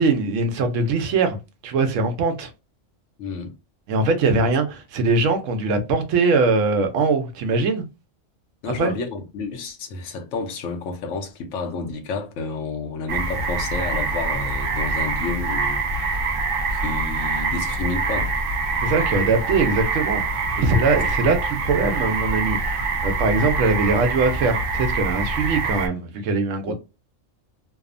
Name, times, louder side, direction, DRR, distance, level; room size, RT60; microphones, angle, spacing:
voice 1, 0.0-1.4 1.6-2.5 3.9-7.8 8.8-8.9 18.8-26.7, right 3 dB, 80° right, 0.9 m, -21 dB
voice 2, 3.2-3.5 8.6-16.2 16.7-18.3 21.2-21.3 26.7-26.8, left 4 dB, 75° left, 0.9 m, -30 dB
sound 1, 13.1-25.9, right 3 dB, 60° right, 0.6 m, -25 dB
2.8 x 2.0 x 2.4 m
omnidirectional pair, 1.3 m